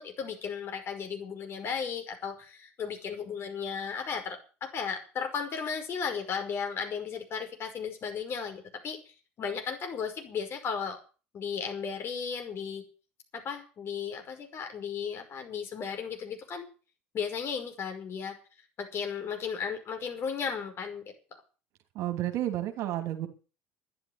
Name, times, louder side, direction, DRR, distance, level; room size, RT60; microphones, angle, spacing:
voice 1, 0.0-9.0 9.4-11.0 11.3-12.8 13.3-16.7 17.1-18.4 18.8-21.0, left 6 dB, 40° left, 5.5 m, -35 dB
voice 2, 21.9-23.3, right 13 dB, 55° right, 2.9 m, -31 dB
13.0 x 10.5 x 8.1 m
figure-of-eight pair, 65°, 6 cm